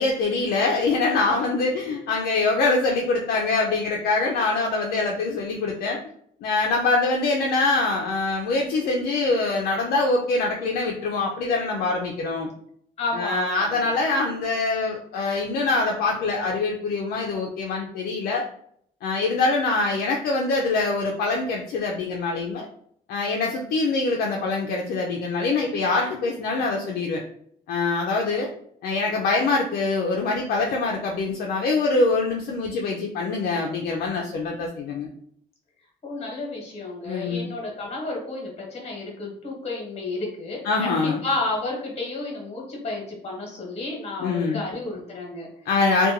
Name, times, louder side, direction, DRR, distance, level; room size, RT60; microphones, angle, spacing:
voice 1, 0.0-6.0 6.4-12.5 13.2-18.5 19.0-22.7 23.1-27.2 27.7-28.5 28.8-35.1 37.1-37.5 40.6-41.2 44.2-44.6 45.7-46.1, left 3 dB, 65° left, 0 dB, 0.4 m, -24 dB
voice 2, 13.0-13.9 36.0-45.7, left 2 dB, 40° left, -1 dB, 1.1 m, -32 dB
2.4 x 2.2 x 2.7 m, 0.66 s
cardioid pair, 110°, 17 cm